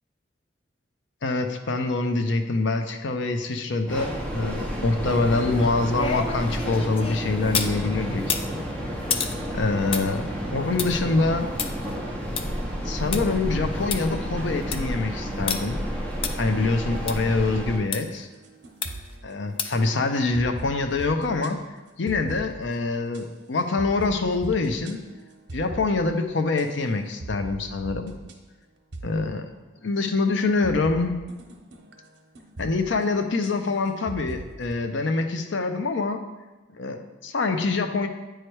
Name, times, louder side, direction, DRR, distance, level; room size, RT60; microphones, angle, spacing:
voice 1, 1.2-8.4 9.5-10.3 10.5-11.5 12.8-15.8 16.4-18.3 19.2-21.6 22.0-25.0 25.5-28.1 29.0-29.5 29.8-31.2 32.6-36.2 36.7-38.1, left 3 dB, 75° left, 7 dB, 0.6 m, -25 dB
Train, 3.9-17.8, equal, 5° left, 0.7 m, -31 dB
sound 1, 5.3-7.8 8.2-13.2 13.6-13.7 13.9-14.0 14.5-14.9 15.5-15.6 16.2-16.3 17.1-17.2 17.9-18.0 18.8-19.1 19.6-19.9 20.3-20.4, left 5 dB, 30° left, 0.3 m, -31 dB
sound 2, 18.3-19.8 20.3-21.5 22.1-22.8 23.1-23.2 23.8-26.6 27.2-28.3 28.9-29.7 30.6-34.7, right 2 dB, 65° right, 0.8 m, -40 dB
8.9 x 3.2 x 4.5 m, 1.1 s
head